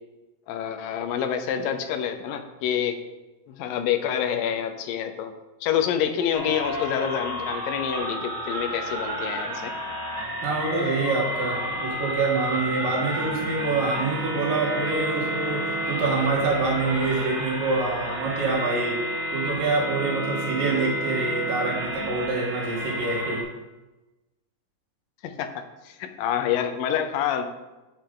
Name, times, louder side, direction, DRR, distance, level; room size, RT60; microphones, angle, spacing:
voice 1, 0.5-3.0 3.5-5.3 5.6-9.7 25.2-27.5, left 8 dB, 85° left, 7 dB, 2.5 m, -27 dB
sound 1, 6.3-23.4, equal, 60° right, 4.2 m, -31 dB
voice 2, 10.4-19.0 19.3-23.5, right 3 dB, 85° right, -2 dB, 3.1 m, -26 dB
8.6 x 8.6 x 3.8 m, 1.1 s
omnidirectional pair, 3.8 m